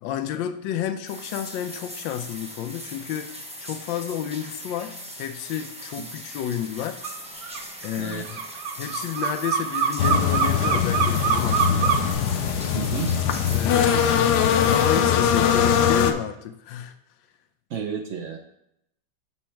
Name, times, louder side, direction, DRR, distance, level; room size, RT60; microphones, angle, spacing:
voice 1, 0.0-3.3 3.6-7.0 7.8-8.2 8.8-12.0 13.5-16.9, left 10 dB, 90° left, 10 dB, 1.3 m, -31 dB
sound 1, 1.1-15.0, equal, 10° right, 0.4 m, -40 dB
sound 2, 7.0-7.2 7.4-12.1, right 7 dB, 85° right, 1.5 m, -24 dB
voice 2, 8.0-8.4 12.7-13.1 17.7-18.4, right 7 dB, 60° right, 4 dB, 0.8 m, -32 dB
sound 3, 10.0-16.1, left 8 dB, 70° left, 1.1 m, -21 dB
7.4 x 4.5 x 4.4 m, 0.78 s
omnidirectional pair, 2.0 m